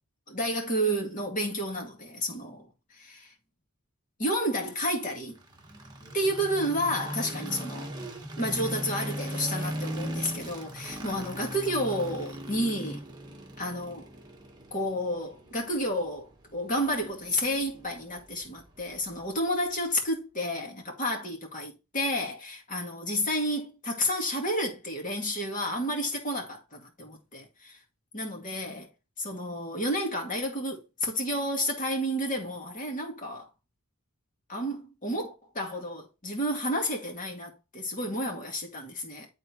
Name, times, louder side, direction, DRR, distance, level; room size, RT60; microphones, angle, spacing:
voice 1, 0.3-2.7 4.2-5.4 6.1-7.9 8.4-13.0 13.6-14.1 14.7-27.8 28.1-28.9 29.2-33.5 34.5-39.3, equal, 35° left, 2.1 m, -31 dB
sound 1, 5.3-19.4, right 1 dB, 20° right, 1.2 m, -39 dB
11.5 x 3.9 x 3.0 m
head